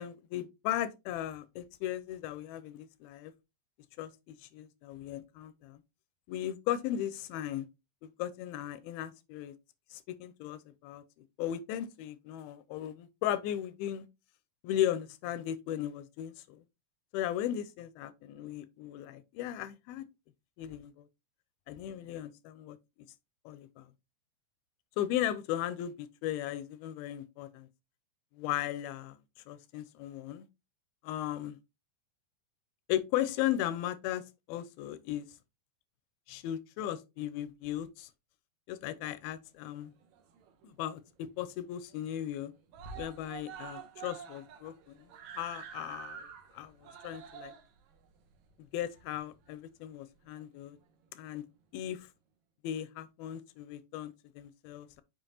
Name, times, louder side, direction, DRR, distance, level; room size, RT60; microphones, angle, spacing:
voice 1, 0.0-3.3 4.0-5.8 6.3-7.7 8.2-9.6 9.9-11.0 11.4-14.1 14.6-16.6 17.1-20.1 20.6-21.1 21.7-22.8 23.5-23.9 25.0-27.7 28.3-29.2 29.5-30.5 31.0-31.6 32.9-34.2 34.5-35.3 36.3-38.1 38.7-39.9 40.6-42.5 43.0-45.1 45.4-46.3 46.5-47.5 48.7-50.8 51.1-51.4 51.7-52.1 52.6-55.0, left 12 dB, 85° left, 2.2 m, -36 dB
Screaming, 39.8-40.7 41.1-41.2 41.5-41.6 41.9-42.4 42.7-49.5 50.4-50.5, right 7 dB, 80° right, 1.7 m, -48 dB
7.1 x 5.3 x 2.7 m
omnidirectional pair, 4.6 m